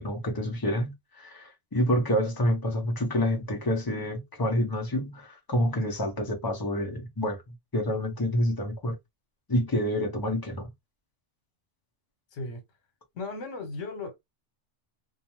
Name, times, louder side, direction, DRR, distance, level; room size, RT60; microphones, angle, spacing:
voice 1, 0.0-7.4 7.7-8.9 9.5-10.7, equal, 25° left, 0.5 m, -28 dB
voice 2, 12.3-12.6 13.1-14.1, left 3 dB, 75° left, 1.2 m, -36 dB
2.5 x 2.2 x 3.0 m
omnidirectional pair, 1.3 m